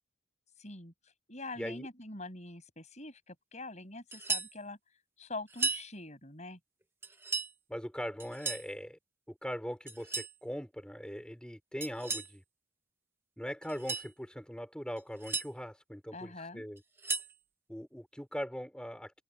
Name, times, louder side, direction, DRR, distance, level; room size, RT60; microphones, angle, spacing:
voice 1, 0.6-6.6 16.1-16.6, left 2 dB, 35° left, 7.8 m, -45 dB
voice 2, 1.6-1.9 7.7-9.0 9.3-12.4 13.4-16.8 17.7-19.2, equal, 5° left, 4.4 m, -41 dB
sound 1, 4.1-4.5 5.5-5.9 7.0-7.5 8.2-8.7 9.9-10.3 11.8-12.3 13.6-14.1 15.0-15.5 16.8-17.3, right 3 dB, 10° right, 1.3 m, -35 dB
head